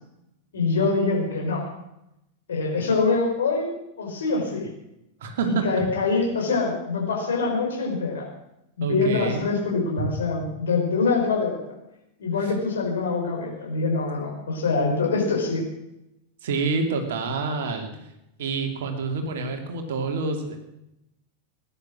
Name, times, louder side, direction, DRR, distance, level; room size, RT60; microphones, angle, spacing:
voice 1, 0.5-1.7 2.5-4.7 5.4-8.3 8.8-11.7 12.2-15.6, left 4 dB, 65° left, 1 dB, 4.7 m, -24 dB
voice 2, 5.2-5.9 8.8-9.4 10.0-10.1 12.4-12.5 16.4-17.9 18.4-20.6, right 4 dB, 55° right, 4 dB, 2.7 m, -27 dB
18.0 x 10.5 x 6.3 m, 0.86 s
figure-of-eight pair, 90°, 0 cm